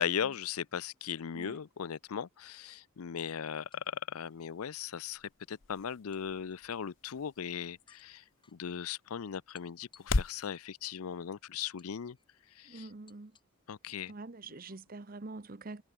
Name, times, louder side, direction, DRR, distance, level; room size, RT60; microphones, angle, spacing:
voice 1, 0.0-8.2 8.5-12.2 12.6-12.9 13.7-14.1, left 8 dB, 80° left, 0.5 m, -38 dB
sound 1, 3.2-4.0 6.1-6.9 7.9-8.6 9.5-10.9 11.8-12.4 13.1-13.6 14.7-14.8, left 6 dB, 20° left, 7.1 m, -66 dB
sound 2, 4.2-10.5, left 3 dB, 55° left, 0.9 m, -40 dB
voice 2, 12.6-13.3 14.1-15.8, right 3 dB, 40° right, 0.8 m, -45 dB
head